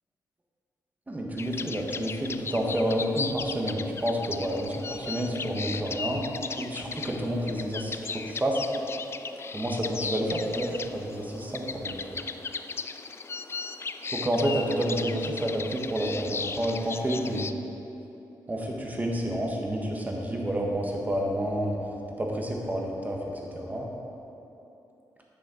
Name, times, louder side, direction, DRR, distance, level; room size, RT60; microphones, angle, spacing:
voice 1, 1.1-6.2 6.5-8.6 9.5-12.0 14.1-17.5 18.5-21.8 22.2-23.2 23.5-23.9, equal, 20° right, 0 dB, 1.4 m, -29 dB
sound 1, 1.4-17.5, left 5 dB, 35° left, 0.4 m, -37 dB
9.9 x 6.5 x 4.4 m, 2.9 s
cardioid pair, 85°, 7 cm